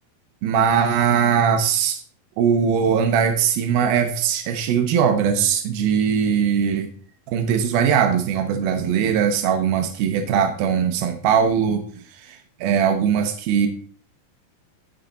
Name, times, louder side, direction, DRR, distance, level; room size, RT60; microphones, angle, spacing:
voice 1, 0.4-2.0 2.4-6.9 7.3-11.9 12.1-13.7, right 7 dB, 85° right, 6 dB, 2.9 m, -20 dB
14.5 x 5.8 x 3.9 m, 0.44 s
omnidirectional pair, 4.2 m